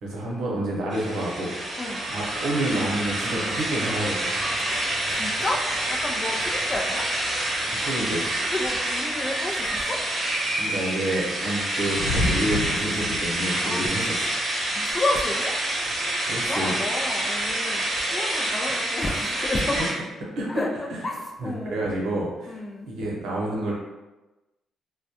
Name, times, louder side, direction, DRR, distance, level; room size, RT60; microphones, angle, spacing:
voice 1, 0.0-1.5 2.1-4.3 7.7-8.3 10.6-14.3 16.3-16.8 20.4-20.6 20.9-21.0 21.4-22.6 22.8-23.7, right 1 dB, 80° right, -4 dB, 0.8 m, -28 dB
sound 1, 0.9-19.9, right 1 dB, 40° right, 0.8 m, -27 dB
voice 2, 4.7-5.6 5.9-7.1 8.4-10.0 13.5-13.9 14.2-14.3 14.7-15.6 16.5-19.9 20.5-20.7 21.0-21.8 22.5-22.9, left 2 dB, 35° left, 1 dB, 0.4 m, -31 dB
sound 2, 5.4-6.8 7.1-7.2 7.5-10.2 10.8-16.3, left 1 dB, 70° left, 1.1 m, -34 dB
2.2 x 2.1 x 2.8 m, 1.1 s
cardioid pair, 90°, 0 cm